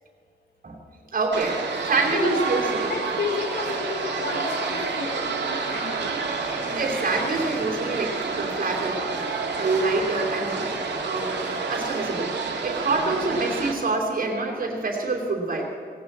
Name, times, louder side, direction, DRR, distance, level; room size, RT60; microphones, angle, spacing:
voice 1, 1.1-2.9 6.7-9.1 9.5-10.7 11.0-11.4 11.7-12.3 12.6-15.7, right 3 dB, 55° right, -1 dB, 3.0 m, -26 dB
sound 1, 1.3-13.7, right 4 dB, 85° right, 2.0 m, -29 dB
voice 2, 2.1-2.6 2.9-6.8, left 4 dB, 65° left, 2 dB, 1.3 m, -32 dB
18.5 x 17.0 x 4.3 m, 2.1 s
wide cardioid pair, 150°, 18 cm